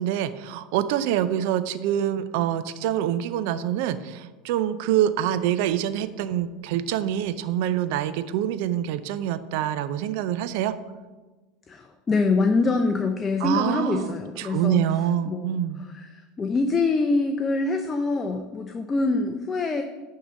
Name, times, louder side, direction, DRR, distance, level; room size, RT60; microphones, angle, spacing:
voice 1, 0.0-10.8 13.4-15.8, right 11 dB, 70° right, 13 dB, 0.5 m, -26 dB
voice 2, 11.7-14.9 15.3-19.8, left 3 dB, 25° left, 6 dB, 0.6 m, -25 dB
10.0 x 3.8 x 5.3 m, 1.3 s
hypercardioid pair, 95°, 0 cm